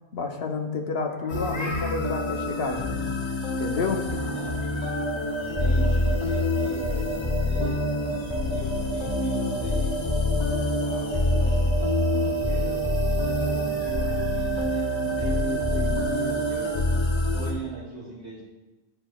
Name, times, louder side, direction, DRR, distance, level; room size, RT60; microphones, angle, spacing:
voice 1, 0.1-3.1 3.6-4.0 15.2-16.4, left 4 dB, 65° left, 3 dB, 1.0 m, -30 dB
Meow, 1.1-2.2 4.0-5.1, left 1 dB, 15° left, 1.3 m, -39 dB
sound 1, 1.3-17.5, left 2 dB, 35° left, 0.5 m, -26 dB
voice 2, 4.3-4.9 5.4-7.8 8.5-10.3 10.8-15.3 15.7-15.8 16.5-16.9 17.3-18.4, right 3 dB, 80° right, -5 dB, 1.6 m, -41 dB
sound 2, 5.0-16.7, right 10 dB, 45° right, 2.1 m, -31 dB
9.8 x 4.5 x 2.2 m, 1.1 s
omnidirectional pair, 1.1 m